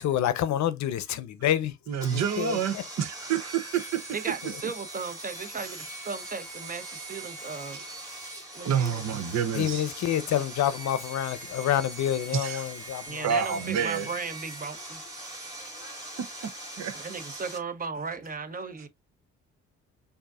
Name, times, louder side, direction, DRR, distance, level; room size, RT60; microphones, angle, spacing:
voice 1, 0.0-1.8 2.1-2.8 9.5-13.3, left 11 dB, 65° left, 0.7 m, -28 dB
voice 2, 1.9-4.2 5.8-5.9 7.7-7.8 8.6-9.8 12.3-12.7 13.2-14.1 16.8-17.0, right 8 dB, 60° right, 0.7 m, -28 dB
Sawing, 2.0-17.6, right 1 dB, 10° right, 1.7 m, -41 dB
voice 3, 4.1-7.8 8.5-9.0 13.0-15.0 16.9-18.9, right 5 dB, 30° right, 0.7 m, -36 dB
4.9 x 2.6 x 2.3 m
cardioid pair, 90°, 30 cm